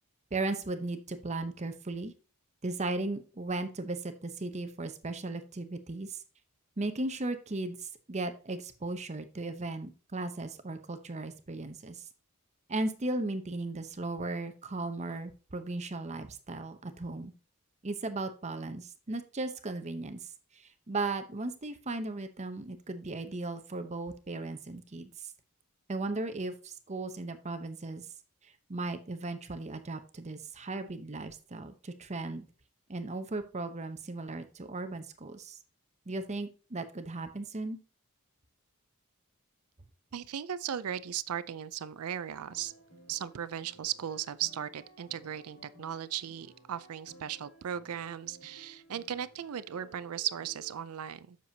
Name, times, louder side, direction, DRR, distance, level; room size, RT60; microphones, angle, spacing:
voice 1, 0.3-2.1 2.6-6.2 6.8-12.0 12.7-17.3 17.8-20.2 20.5-25.1 25.9-28.1 28.7-32.4 32.9-35.6 36.1-37.8, right 2 dB, 30° right, 0.8 m, -36 dB
voice 2, 40.1-42.7 43.1-51.4, right 10 dB, 90° right, 0.5 m, -37 dB
sound 1, 42.5-50.7, right 2 dB, 90° left, 2.7 m, -56 dB
7.7 x 6.8 x 2.7 m
head